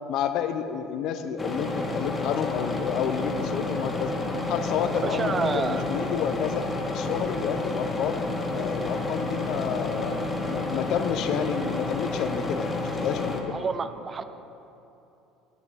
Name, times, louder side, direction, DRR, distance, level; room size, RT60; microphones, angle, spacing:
voice 1, 0.1-4.1 4.5-8.2 8.5-13.6, left 8 dB, 60° left, 9 dB, 0.5 m, -30 dB
sound 1, 1.4-13.4, left 2 dB, 20° left, 0.7 m, -30 dB
voice 2, 4.9-5.8 13.5-14.2, right 5 dB, 30° right, 11 dB, 0.4 m, -29 dB
10.5 x 5.8 x 3.6 m, 2.9 s
supercardioid pair, 110°, 0 cm